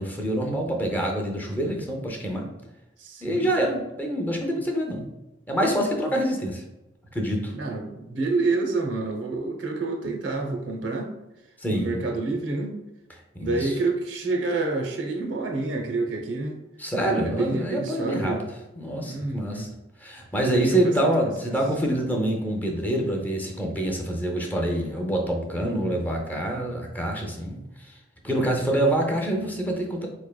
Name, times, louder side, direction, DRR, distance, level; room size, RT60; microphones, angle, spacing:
voice 1, 0.0-2.5 3.2-5.1 5.5-6.6 7.1-7.5 11.6-12.0 13.4-13.7 16.8-18.4 18.8-19.7 20.0-27.9 28.2-30.1, right 1 dB, 10° left, 1 dB, 0.5 m, -26 dB
voice 2, 3.0-3.5 7.5-11.1 11.7-12.8 13.4-16.6 17.0-18.4 19.0-19.7 20.5-20.9, right 3 dB, 85° right, 2 dB, 0.7 m, -28 dB
4.3 x 3.2 x 2.2 m, 0.97 s
head